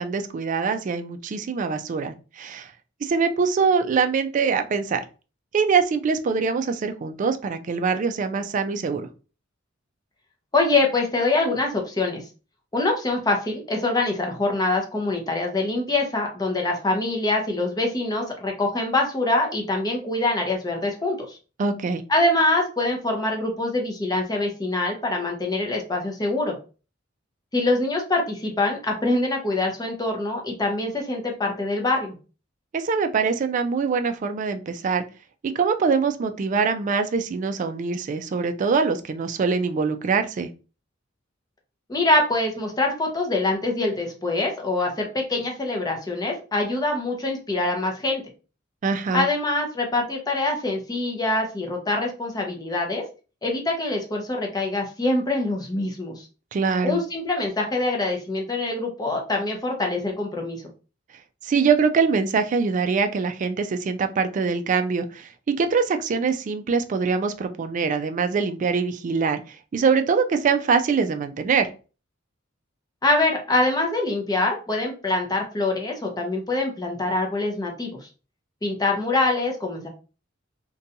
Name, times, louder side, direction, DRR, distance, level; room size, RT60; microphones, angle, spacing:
voice 1, 0.0-2.7 3.0-5.0 5.5-9.1 21.6-22.0 32.7-35.0 35.6-40.5 48.8-49.3 56.5-57.0 61.4-65.3 65.6-71.7, right 5 dB, 40° right, 8 dB, 0.3 m, -23 dB
voice 2, 10.5-12.2 12.7-21.4 22.1-26.6 27.5-32.2 41.9-48.2 49.1-53.0 53.4-56.2 56.8-60.6 73.0-78.0 78.6-79.9, left 2 dB, 20° left, 1 dB, 0.6 m, -24 dB
2.6 x 2.2 x 2.6 m, 0.34 s
head